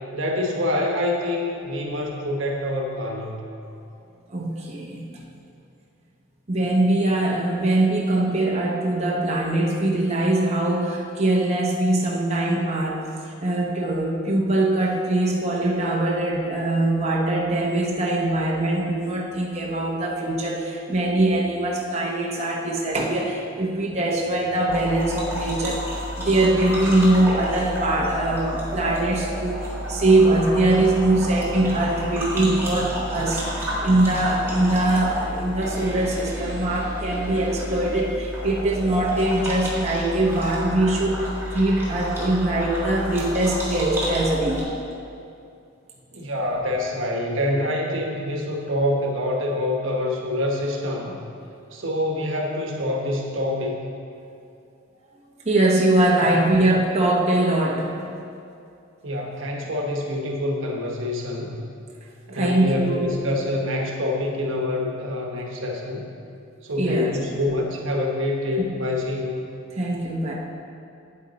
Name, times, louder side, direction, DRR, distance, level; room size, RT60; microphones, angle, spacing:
voice 1, 0.1-3.5 46.1-51.2 51.7-53.8 56.3-56.4 59.0-61.6 62.3-66.1 66.6-69.4, left 1 dB, 70° right, 1 dB, 1.1 m, -26 dB
voice 2, 4.3-5.2 6.5-13.0 13.4-25.8 26.2-44.6 55.4-57.9 62.3-63.1 66.8-67.2 69.8-70.3, right 1 dB, 35° right, -2 dB, 0.8 m, -22 dB
sound 1, 24.7-44.6, equal, 10° right, 1.7 m, -31 dB
9.0 x 8.6 x 4.0 m, 2.5 s
head